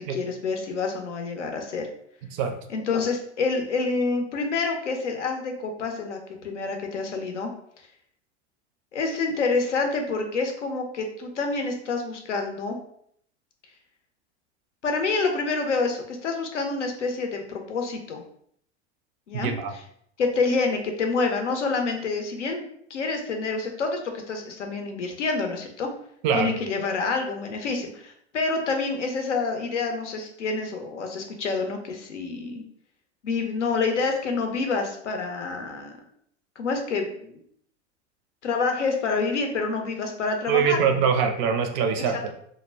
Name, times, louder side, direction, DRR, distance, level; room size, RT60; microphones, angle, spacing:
voice 1, 0.0-1.9 2.7-7.5 8.9-12.8 14.8-18.2 19.3-19.5 20.2-22.6 22.9-25.9 26.3-32.6 33.2-35.9 36.6-37.4 38.4-40.8 42.0-42.2, left 4 dB, 85° left, 4 dB, 0.6 m, -27 dB
voice 2, 19.4-19.7 26.2-26.5 40.5-42.2, right 6 dB, 40° right, 6 dB, 0.4 m, -23 dB
2.1 x 2.0 x 3.3 m, 0.67 s
hypercardioid pair, 85°, 35 cm